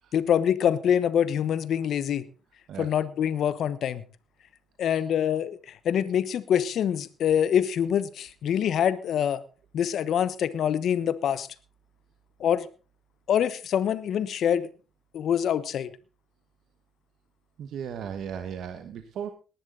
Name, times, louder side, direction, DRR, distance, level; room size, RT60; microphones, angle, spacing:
voice 1, 0.1-2.2 2.8-4.0 4.8-5.6 5.8-9.4 9.7-11.5 12.4-12.7 13.3-14.7 15.1-15.9, left 9 dB, 70° left, 15 dB, 1.1 m, -25 dB
voice 2, 17.6-19.3, right 8 dB, 75° right, 8 dB, 1.2 m, -36 dB
19.0 x 11.0 x 3.9 m, 0.35 s
cardioid pair, 90°, 0 cm